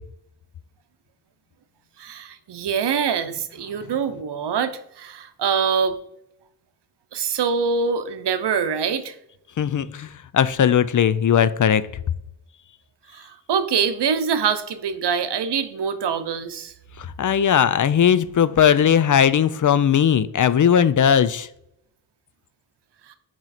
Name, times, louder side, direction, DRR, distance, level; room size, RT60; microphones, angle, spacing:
voice 1, 2.0-6.0 7.1-9.1 13.1-16.7, right 6 dB, 85° right, 10 dB, 0.7 m, -24 dB
voice 2, 9.6-11.8 17.0-21.5, left 8 dB, 50° left, 15 dB, 0.4 m, -18 dB
8.8 x 3.1 x 4.1 m, 0.76 s
wide cardioid pair, 70°, 40 cm